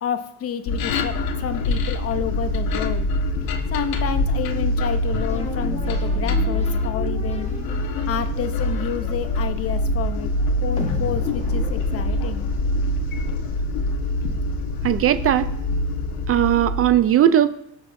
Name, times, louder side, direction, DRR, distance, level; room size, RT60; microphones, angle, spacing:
voice 1, 0.0-3.1 3.7-7.5 8.1-10.3 10.6-12.5, left 8 dB, 40° left, 10 dB, 0.8 m, -30 dB
sound 1, 0.7-17.0, left 1 dB, 65° left, 1.4 m, -24 dB
sound 2, 5.3-12.8, left 1 dB, 15° left, 1.5 m, -36 dB
voice 2, 14.8-15.5 16.3-17.5, right 11 dB, 35° right, 12 dB, 0.5 m, -18 dB
17.0 x 6.9 x 2.7 m, 0.79 s
cardioid pair, 120°, 38 cm